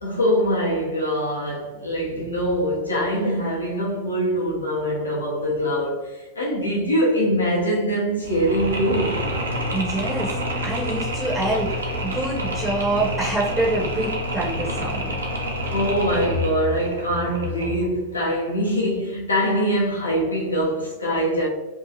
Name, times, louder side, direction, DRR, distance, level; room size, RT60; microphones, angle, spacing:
voice 1, 0.0-9.2 15.7-21.5, equal, 75° left, 0.7 m, -23 dB
Mechanisms, 8.2-18.0, equal, 70° right, 0.5 m, -28 dB
voice 2, 9.7-10.3 10.6-15.2, right 2 dB, 10° right, 0.7 m, -26 dB
2.7 x 2.3 x 2.7 m
figure-of-eight pair, 90°, 0 cm